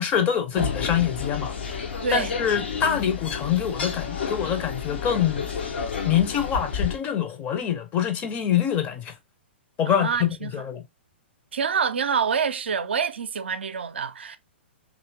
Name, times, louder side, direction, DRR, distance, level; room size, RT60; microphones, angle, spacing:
voice 1, 0.0-5.5 6.0-9.1 9.8-10.8, left 9 dB, 25° left, 0.6 m, -25 dB
sound 1, 0.6-7.0, left 5 dB, 65° left, 0.8 m, -30 dB
voice 2, 9.9-10.5 11.5-14.4, right 6 dB, 70° right, 0.4 m, -26 dB
2.7 x 2.6 x 2.9 m
figure-of-eight pair, 115°, 6 cm